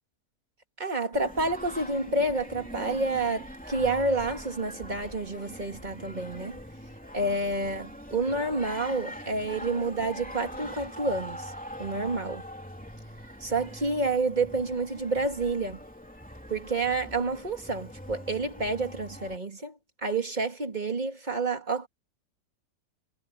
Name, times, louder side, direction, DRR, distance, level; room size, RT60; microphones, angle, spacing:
voice 1, 0.8-6.6 7.1-11.5 11.8-12.4 13.4-15.8 16.5-21.9, right 3 dB, 25° right, 2.3 m, -29 dB
Singing, 1.1-19.4, equal, 5° left, 2.9 m, -43 dB
omnidirectional pair, 1.7 m